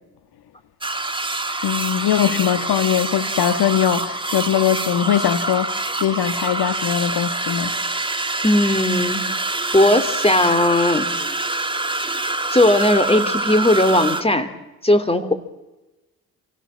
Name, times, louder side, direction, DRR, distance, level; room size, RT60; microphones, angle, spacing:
sound 1, 0.8-14.2, right 2 dB, 10° right, 2.0 m, -25 dB
voice 1, 1.6-7.7, left 10 dB, 65° left, 10 dB, 1.6 m, -21 dB
voice 2, 8.4-9.2 9.7-11.0 12.5-14.5 14.8-15.3, left 1 dB, 15° left, 10 dB, 3.2 m, -17 dB
28.0 x 16.5 x 7.5 m, 1.1 s
hypercardioid pair, 50°, 40 cm